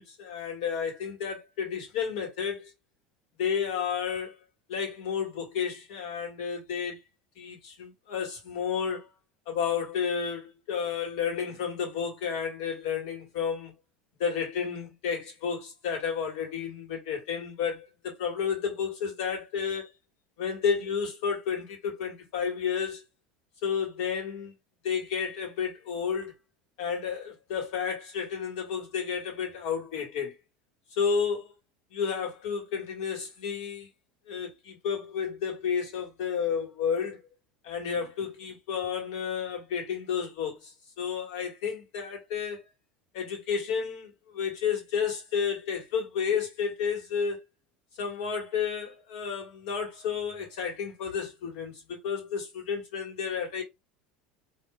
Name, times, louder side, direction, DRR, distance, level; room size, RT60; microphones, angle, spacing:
voice 1, 0.0-2.7 3.4-4.3 4.7-7.0 7.4-9.1 9.5-13.7 14.2-19.9 20.4-23.0 23.6-24.5 24.8-26.3 26.8-30.3 31.0-31.5 31.9-33.9 34.3-37.2 37.6-40.7 41.0-42.6 43.1-47.4 48.0-53.6, left 7 dB, 70° left, 1.7 m, -31 dB
4.6 x 2.8 x 2.3 m
hypercardioid pair, 90°, 4 cm